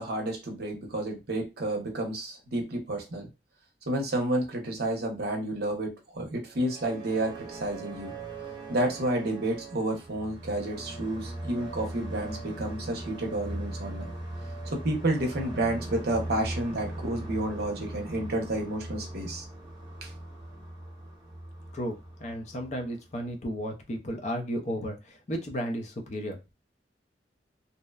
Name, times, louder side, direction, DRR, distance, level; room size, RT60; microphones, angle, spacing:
voice 1, 0.0-3.3 3.9-8.1 8.7-14.1 14.7-19.4 20.0-20.1, right 1 dB, 60° right, 2 dB, 0.7 m, -30 dB
sound 1, 6.5-23.3, right 2 dB, 25° right, 0.9 m, -40 dB
voice 2, 21.7-26.5, equal, 40° left, 4 dB, 0.5 m, -34 dB
2.7 x 2.1 x 2.3 m, 0.25 s
head